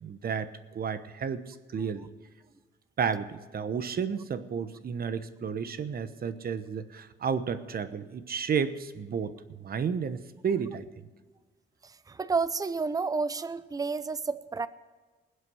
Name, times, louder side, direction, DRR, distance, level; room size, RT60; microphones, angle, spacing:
voice 1, 0.0-2.1 3.0-10.8, right 6 dB, 50° right, 12 dB, 1.1 m, -32 dB
voice 2, 11.8-14.7, right 4 dB, 20° right, 15 dB, 0.6 m, -30 dB
20.0 x 8.2 x 6.3 m, 1.3 s
cardioid pair, 90°, 20 cm